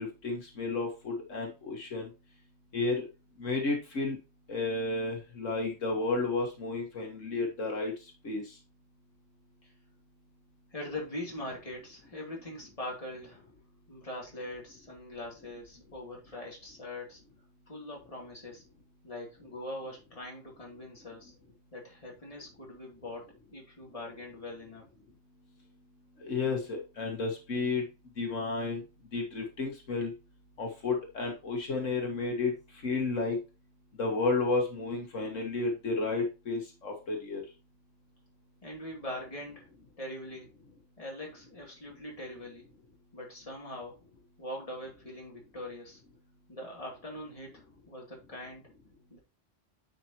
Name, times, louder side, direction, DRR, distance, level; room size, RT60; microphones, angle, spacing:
voice 1, 0.0-2.1 2.7-3.0 3.4-4.2 4.5-7.9 8.2-8.5 26.2-27.8 28.2-28.8 29.1-30.1 30.6-32.5 32.8-33.4 34.0-37.4, left 3 dB, 80° left, 1 dB, 2.1 m, -32 dB
voice 2, 10.7-13.4 13.9-17.2 17.7-18.6 19.0-21.3 21.7-23.2 23.5-24.8 38.6-39.7 40.0-40.5 41.0-42.7 43.1-44.0 44.4-46.0 46.5-48.6 49.1-49.2, left 1 dB, 25° left, -2 dB, 2.7 m, -42 dB
9.2 x 5.9 x 2.9 m, 0.28 s
omnidirectional pair, 1.3 m